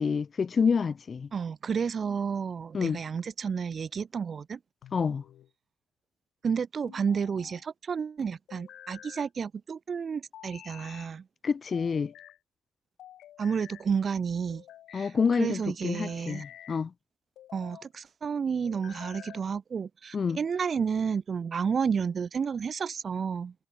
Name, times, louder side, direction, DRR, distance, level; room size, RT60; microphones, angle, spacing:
voice 1, 0.0-1.3 2.7-3.0 4.9-5.2 11.4-12.1 14.9-16.9 20.1-20.4, left 5 dB, 40° left, 1.3 m, -28 dB
voice 2, 1.3-4.6 6.4-11.2 13.4-14.6 14.9-15.1 15.4-16.4 17.5-23.5, right 6 dB, 45° right, 1.9 m, -31 dB
sound 1, 4.8-5.5 6.9-7.6 8.5-9.3 10.3-11.1 11.7-12.4 13.0-13.9 14.5-15.1 15.9-16.8 17.4-17.9 18.6-19.5, left 12 dB, 80° left, 6.4 m, -49 dB
cardioid pair, 90°, 0 cm